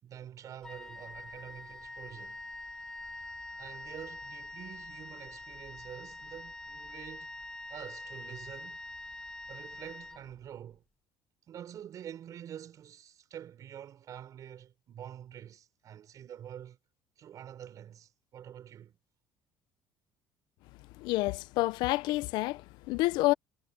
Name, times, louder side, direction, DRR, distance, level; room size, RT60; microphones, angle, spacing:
voice 1, 0.0-2.4 3.6-7.3 7.7-8.8 9.5-10.8 11.5-16.8 17.2-19.0, right 10 dB, 50° right, 5.3 m, -47 dB
Wind instrument woodwind instrument, 0.6-10.7, left 2 dB, 10° left, 0.5 m, -45 dB
voice 2, 20.9-23.3, left 19 dB, 75° left, 0.6 m, -29 dB
cardioid pair, 110°, 8 cm